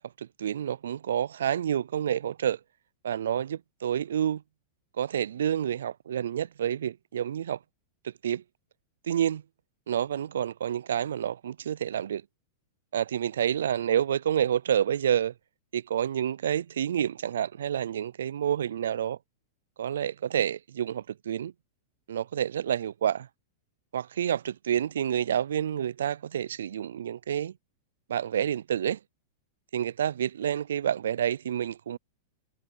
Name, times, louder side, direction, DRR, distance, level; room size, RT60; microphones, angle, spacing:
voice 1, 0.2-2.6 3.0-4.4 5.0-7.6 8.2-8.4 9.1-9.4 9.9-12.2 12.9-15.3 15.7-19.2 19.8-21.5 22.1-23.3 23.9-27.5 28.1-29.0 29.7-32.0, right 9 dB, 85° right, 0.3 m, -28 dB
hypercardioid pair, 130°, 0 cm